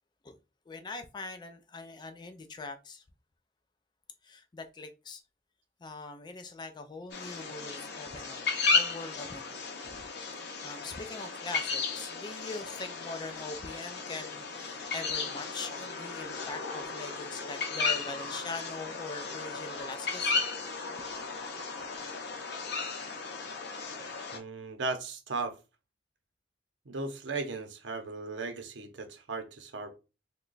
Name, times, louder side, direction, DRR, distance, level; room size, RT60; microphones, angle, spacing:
voice 1, 0.7-3.0 4.2-5.2 5.8-8.4 8.7-9.6 9.8-10.0 10.6-20.4, left 3 dB, 25° left, 0.3 m, -42 dB
sound 1, 7.1-24.4, left 4 dB, 65° left, 0.6 m, -34 dB
voice 2, 24.3-25.6 26.9-30.0, right 3 dB, 85° right, 0.7 m, -36 dB
3.0 x 2.2 x 3.8 m
head